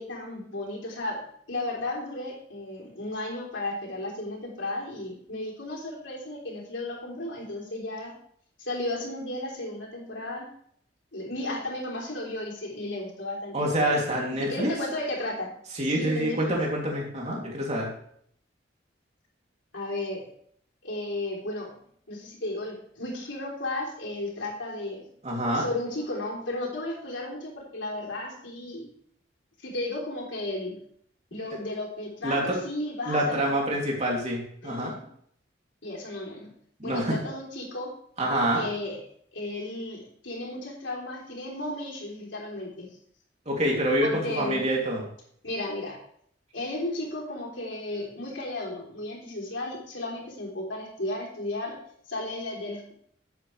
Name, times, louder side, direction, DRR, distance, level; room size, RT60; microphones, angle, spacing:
voice 1, 0.0-8.1 8.6-10.5 11.1-13.7 14.4-15.5 15.8-16.5 19.7-20.3 20.8-21.7 22.1-25.1 25.5-28.9 29.6-30.8 31.3-33.5 34.6-35.0 35.8-36.5 36.8-37.9 38.5-39.0 39.3-42.9 44.0-44.6 45.4-46.0 46.5-51.7 52.1-52.9, left 2 dB, 70° left, -2 dB, 3.6 m, -34 dB
voice 2, 13.5-14.7 15.7-17.9 25.2-25.6 32.2-32.6 33.1-34.9 36.8-37.1 38.2-38.6 43.5-45.0, right 1 dB, 35° right, -2 dB, 2.9 m, -26 dB
12.0 x 8.5 x 3.3 m, 0.65 s
head